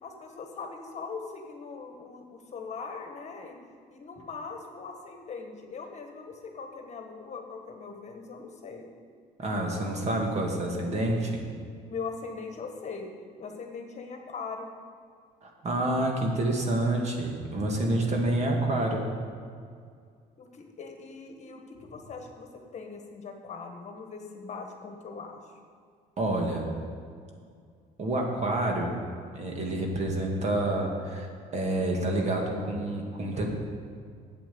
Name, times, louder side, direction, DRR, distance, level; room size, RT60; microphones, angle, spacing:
voice 1, 0.0-3.6 3.9-8.9 11.8-13.1 13.4-14.7 20.4-25.4, left 4 dB, 45° left, 3 dB, 1.4 m, -40 dB
voice 2, 9.4-11.5 15.4-19.1 26.2-26.9 28.0-29.0 29.3-33.5, right 1 dB, 40° right, 1 dB, 2.0 m, -28 dB
9.0 x 7.9 x 6.8 m, 2.2 s
cardioid pair, 110°, 17 cm